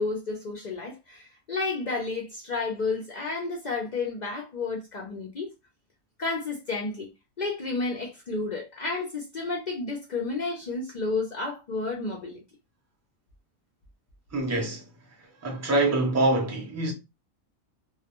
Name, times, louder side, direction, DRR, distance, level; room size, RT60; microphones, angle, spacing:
voice 1, 0.0-5.5 6.2-7.1 7.4-12.4, left 3 dB, 65° left, 0.4 m, -31 dB
voice 2, 14.3-14.8 15.4-16.9, right 2 dB, 20° right, 0.4 m, -25 dB
2.2 x 2.1 x 2.8 m
omnidirectional pair, 1.4 m